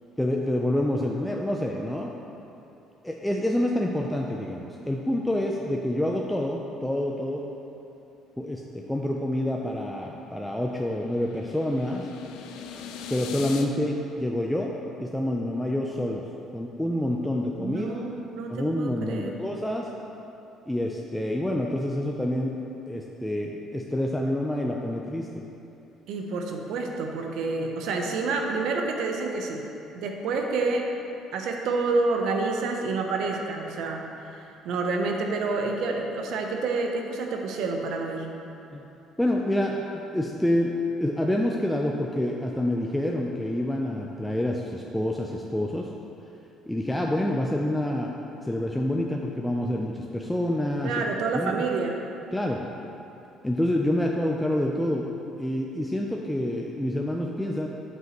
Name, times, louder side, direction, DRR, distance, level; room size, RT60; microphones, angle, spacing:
voice 1, 0.2-2.1 3.0-7.4 8.4-12.1 13.1-16.2 16.5-18.0 18.5-19.9 20.7-22.6 22.9-25.3 38.7-38.8 39.2-40.7 41.0-45.9 46.7-48.1 48.4-51.0 51.3-51.6 52.3-52.6 53.4-55.1 55.4-57.7, left 1 dB, 5° left, -1 dB, 0.6 m, -27 dB
sound 1, 9.4-13.7, left 7 dB, 80° left, 0.5 m, -41 dB
voice 2, 17.6-19.4 26.1-29.6 29.9-30.9 31.3-38.3 50.8-52.0, right 3 dB, 70° right, 2 dB, 0.9 m, -28 dB
7.9 x 7.7 x 3.1 m, 2.9 s
supercardioid pair, 75°, 0 cm